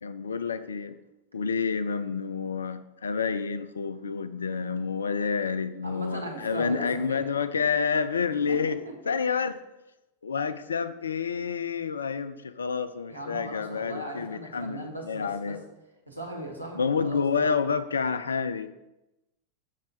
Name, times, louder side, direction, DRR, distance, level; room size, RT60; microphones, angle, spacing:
voice 1, 0.0-1.0 1.3-8.8 9.1-9.6 10.2-15.6 16.7-18.7, left 5 dB, 70° left, 12 dB, 0.5 m, -29 dB
voice 2, 5.8-7.2 8.5-8.9 13.1-15.6 16.1-17.5, right 1 dB, 85° right, 0 dB, 1.5 m, -38 dB
7.4 x 5.7 x 3.8 m, 0.95 s
figure-of-eight pair, 90°, 0 cm